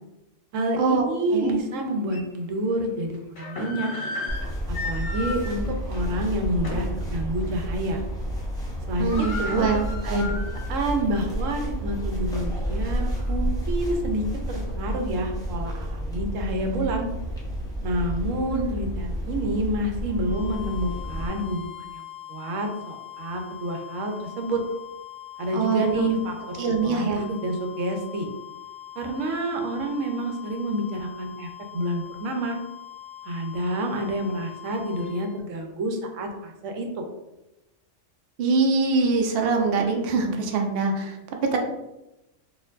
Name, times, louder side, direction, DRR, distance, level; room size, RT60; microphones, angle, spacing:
voice 1, 0.5-3.9 4.7-8.0 8.9-9.7 10.0-10.3 10.7-14.2 14.7-17.1 17.8-22.0 22.3-24.6 25.4-26.6 26.8-28.3 29.0-31.5 31.7-32.6 33.3-37.1, right 1 dB, 85° right, 3 dB, 1.0 m, -28 dB
sound 1, 1.4-1.5 2.1-2.2 3.1-7.0 7.4-7.6 7.9-8.3 8.6-8.7 8.9-10.8 11.2-11.3 12.0-13.3, left 3 dB, 50° left, 1.0 m, -35 dB
sound 2, 4.3-21.3, equal, 5° left, 0.5 m, -30 dB
voice 2, 9.0-10.4 18.5-18.7 25.5-26.2 26.5-27.2 38.4-41.6, right 4 dB, 60° right, 2 dB, 0.7 m, -24 dB
sound 3, 20.1-35.4, left 12 dB, 40° right, 1.0 m, -42 dB
4.3 x 2.5 x 2.4 m, 0.95 s
omnidirectional pair, 1.3 m